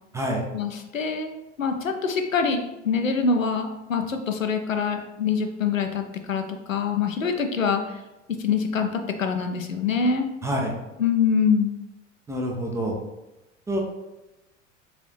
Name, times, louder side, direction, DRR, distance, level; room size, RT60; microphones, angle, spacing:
voice 1, 0.5-8.0 8.4-10.3 11.0-11.7, left 5 dB, 90° left, 5 dB, 0.5 m, -25 dB
voice 2, 12.3-12.9 13.7-13.8, equal, 10° right, 0 dB, 0.3 m, -26 dB
4.0 x 2.8 x 3.1 m, 1.0 s
figure-of-eight pair, 75°, 38 cm